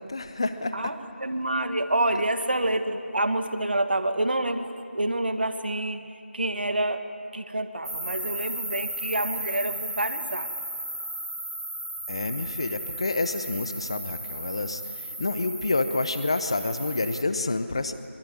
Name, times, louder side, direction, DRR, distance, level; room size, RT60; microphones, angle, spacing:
voice 1, 0.0-1.0 12.1-17.9, left 3 dB, 25° left, 11 dB, 0.9 m, -28 dB
voice 2, 0.7-6.0 6.3-7.0 7.3-10.5, right 1 dB, 50° right, 8 dB, 1.7 m, -27 dB
sound 1, 7.8-17.2, right 1 dB, 70° right, 1.4 m, -35 dB
23.5 x 23.5 x 9.9 m, 2.4 s
figure-of-eight pair, 170°, 7 cm